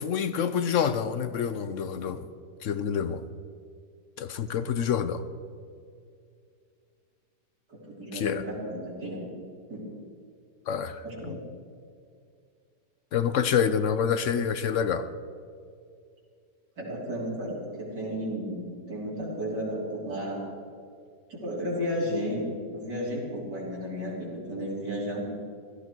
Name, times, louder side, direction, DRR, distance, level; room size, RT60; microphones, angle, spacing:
voice 1, 0.0-2.3 2.6-3.2 4.2-5.2 8.1-8.4 10.7-11.4 13.1-15.1, left 7 dB, 65° left, 12 dB, 0.8 m, -27 dB
voice 2, 7.7-9.3 9.7-9.8 11.0-11.4 16.8-20.4 21.3-22.4 22.7-25.3, equal, 75° right, -6 dB, 4.0 m, -33 dB
16.0 x 14.0 x 4.6 m, 2.3 s
omnidirectional pair, 1.8 m